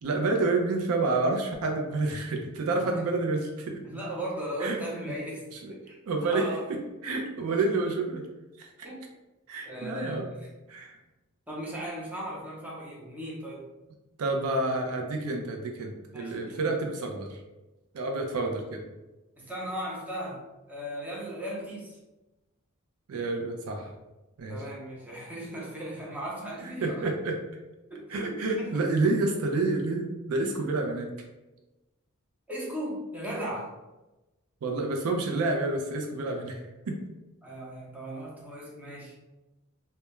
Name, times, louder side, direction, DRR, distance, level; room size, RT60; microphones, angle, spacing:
voice 1, 0.0-3.8 4.6-4.8 5.1-5.2 6.1-6.8 7.0-8.2 8.6-8.7 9.5-10.3 10.7-11.0 14.2-17.4 17.9-18.8 23.1-23.9 24.4-24.6 26.8-27.4 28.1-31.1 34.6-37.0, right 3 dB, 70° right, 2 dB, 0.4 m, -29 dB
voice 2, 3.8-6.0 6.2-6.6 8.8-9.0 9.6-10.5 11.5-13.6 16.1-16.8 19.4-20.4 20.7-22.0 24.5-27.1 27.9-28.8 32.5-33.7 37.4-39.2, right 1 dB, 5° right, -5 dB, 0.6 m, -37 dB
2.2 x 2.1 x 2.9 m, 1.1 s
head